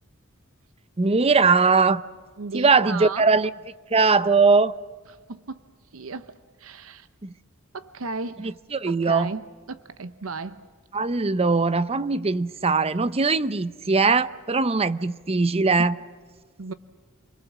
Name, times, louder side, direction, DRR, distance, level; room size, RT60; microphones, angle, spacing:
voice 1, 1.0-2.0 2.5-3.5 3.9-4.7 7.2-7.3 8.4-9.3 10.9-15.9, right 4 dB, 30° right, 0.7 m, -20 dB
voice 2, 2.4-3.2 5.1-5.6 5.9-7.1 7.7-8.6 8.9-10.6 16.6-16.7, right 4 dB, 75° right, 0.8 m, -35 dB
28.5 x 22.0 x 7.4 m
head